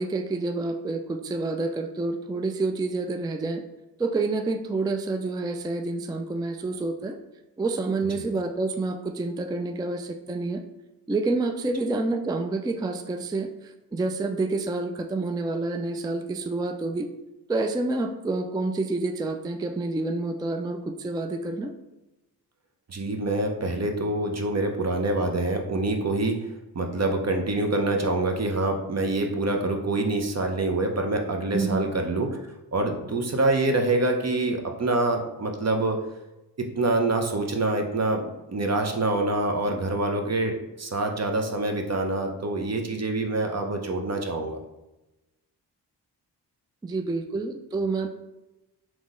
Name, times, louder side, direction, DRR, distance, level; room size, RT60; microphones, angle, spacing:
voice 1, 0.0-3.6 4.0-7.2 7.6-10.6 11.1-13.5 13.9-17.1 17.5-21.7 31.5-31.9 46.8-48.1, right 3 dB, 10° right, 6 dB, 0.4 m, -28 dB
voice 2, 22.9-32.4 32.7-36.0 36.6-44.6, right 2 dB, 40° right, 4 dB, 0.8 m, -26 dB
3.6 x 3.1 x 3.8 m, 0.98 s
cardioid pair, 45°, 42 cm